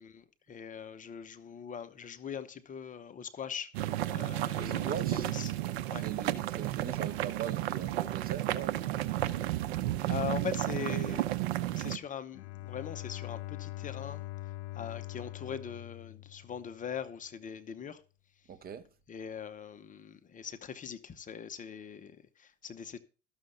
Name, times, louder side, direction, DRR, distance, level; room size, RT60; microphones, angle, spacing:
voice 1, 0.0-3.7 4.0-5.5 5.9-6.1 9.5-9.6 10.0-11.3 11.7-18.0 19.1-23.0, left 8 dB, 25° left, 0.8 m, -41 dB
sound 1, 3.7-12.0, right 14 dB, 65° right, 0.9 m, -32 dB
voice 2, 4.5-5.3 5.9-8.8 18.5-18.9, right 8 dB, 25° right, 0.9 m, -41 dB
Bowed string instrument, 12.3-17.0, left 16 dB, 70° left, 0.9 m, -43 dB
13.0 x 6.6 x 5.5 m
hypercardioid pair, 105°, 34 cm